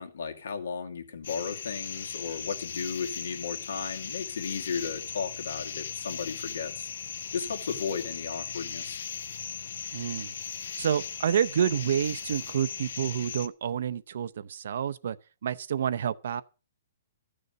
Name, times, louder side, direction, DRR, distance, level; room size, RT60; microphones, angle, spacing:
voice 1, 0.0-6.9 7.3-9.0, left 6 dB, 75° left, 2.3 m, -35 dB
sound 1, 1.2-13.5, left 7 dB, 55° left, 0.8 m, -38 dB
voice 2, 9.9-10.3 10.8-15.2 15.4-16.4, right 9 dB, 50° right, 0.6 m, -28 dB
14.0 x 6.8 x 6.4 m
hypercardioid pair, 175°, 0 cm